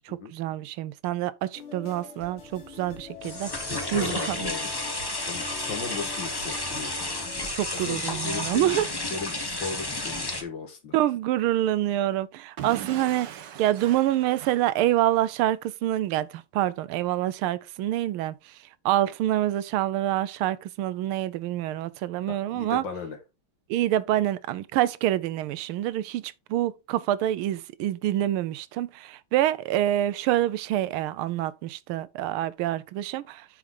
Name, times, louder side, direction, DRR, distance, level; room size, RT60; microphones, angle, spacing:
voice 1, 0.0-4.5 7.5-8.9 10.9-18.3 18.8-22.8 23.7-33.4, right 13 dB, 85° right, 1.5 m, -26 dB
sound 1, 1.5-7.5, left 5 dB, 80° left, 3.4 m, -44 dB
sound 2, 2.4-10.4, left 2 dB, 20° left, 0.6 m, -32 dB
voice 2, 3.7-4.7 5.3-6.9 7.7-8.8 9.1-10.9 22.3-23.2, left 4 dB, 60° left, 2.3 m, -36 dB
Explosion / Shatter, 12.6-15.3, right 9 dB, 60° right, 1.5 m, -40 dB
8.5 x 4.7 x 3.8 m
omnidirectional pair, 2.3 m